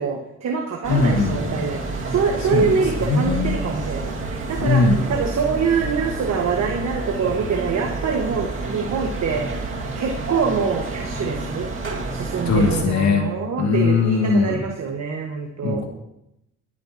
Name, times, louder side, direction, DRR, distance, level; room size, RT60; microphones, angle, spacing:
voice 1, 0.0-1.8 2.1-11.7 12.1-15.8, right 5 dB, 60° right, 1 dB, 1.7 m, -25 dB
sound 1, 0.8-12.8, right 2 dB, 40° right, 2.3 m, -29 dB
voice 2, 0.9-1.7 2.5-2.7 3.0-3.6 4.6-5.1 12.5-14.6 15.6-15.9, left 4 dB, 65° left, 2 dB, 2.4 m, -20 dB
21.0 x 9.9 x 3.0 m, 0.83 s
cardioid pair, 90°, 30 cm